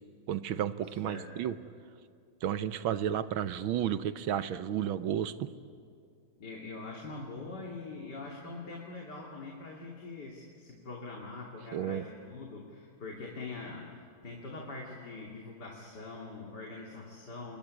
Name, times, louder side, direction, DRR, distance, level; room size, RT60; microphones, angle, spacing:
voice 1, 0.3-1.5 2.4-5.5 11.7-12.0, right 10 dB, 90° right, 12 dB, 1.7 m, -32 dB
voice 2, 1.0-1.4 6.4-17.6, left 3 dB, 55° left, -1 dB, 3.2 m, -43 dB
28.0 x 22.0 x 9.8 m, 2.3 s
omnidirectional pair, 2.2 m